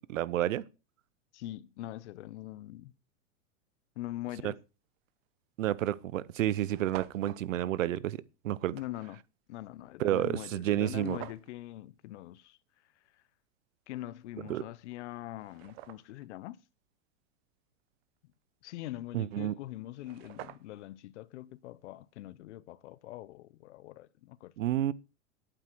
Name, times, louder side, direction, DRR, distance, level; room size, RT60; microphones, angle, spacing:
voice 1, 0.1-0.6 4.4-4.5 5.6-8.7 10.0-11.2 14.5-14.6 19.1-19.5 24.6-24.9, right 13 dB, 90° right, 0.8 m, -30 dB
voice 2, 1.3-2.9 4.0-4.6 8.7-9.2 9.5-12.6 13.9-16.6 18.6-24.5, left 15 dB, 65° left, 0.8 m, -43 dB
sound 1, 5.1-5.3 6.0-6.1 6.3-6.4 6.6-7.4 10.9-11.5 14.5-14.6 15.1-16.3 19.6-19.7 19.9-20.9, right 16 dB, 55° right, 0.9 m, -47 dB
9.8 x 8.8 x 4.6 m
supercardioid pair, 145°, 37 cm